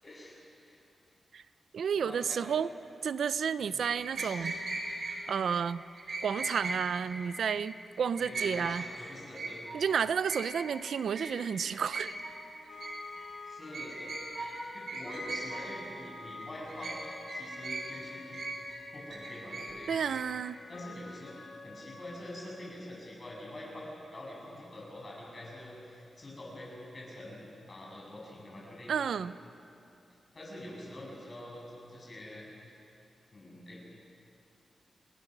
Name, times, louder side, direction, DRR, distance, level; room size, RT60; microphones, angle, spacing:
voice 1, 0.0-0.3 0.6-0.8 1.9-2.6 3.6-3.9 8.2-9.6 13.5-14.1 14.7-18.4 18.9-19.9 20.7-21.4 21.6-28.9 30.3-32.5 33.3-33.8, left 1 dB, 35° left, -3 dB, 7.4 m, -45 dB
voice 2, 1.7-2.7 3.0-4.5 5.3-5.8 6.2-8.8 9.7-12.2 19.9-20.6 28.9-29.3, right 7 dB, 90° right, 14 dB, 0.6 m, -31 dB
Old metal pail, 3.8-5.2 5.9-6.8 7.1-7.6 8.0-8.9 9.1-9.8 10.2-10.8 11.1-11.3 11.6-12.3 12.6-13.3 13.7-14.5 14.9-15.7 16.2-17.0 17.3-18.0 18.3-20.2, right 2 dB, 65° right, 5.1 m, -39 dB
sound 1, 12.1-23.1, left 3 dB, 90° left, 3.5 m, -49 dB
29.5 x 20.0 x 6.1 m, 2.7 s
wide cardioid pair, 130°, 0 cm